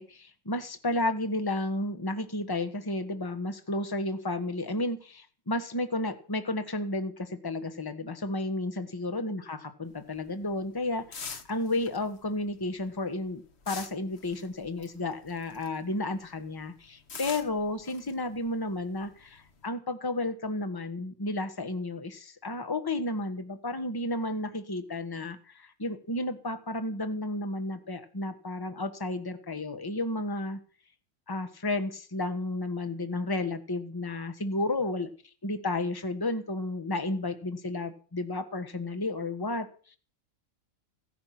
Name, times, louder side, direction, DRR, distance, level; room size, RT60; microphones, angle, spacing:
voice 1, 0.0-30.6 31.3-35.1 35.4-40.0, left 2 dB, 15° left, 8 dB, 1.3 m, -32 dB
sound 1, 9.9-15.9 16.2-19.6, left 5 dB, 50° left, 1.5 m, -45 dB
15.5 x 10.5 x 6.0 m, 0.41 s
omnidirectional pair, 1.5 m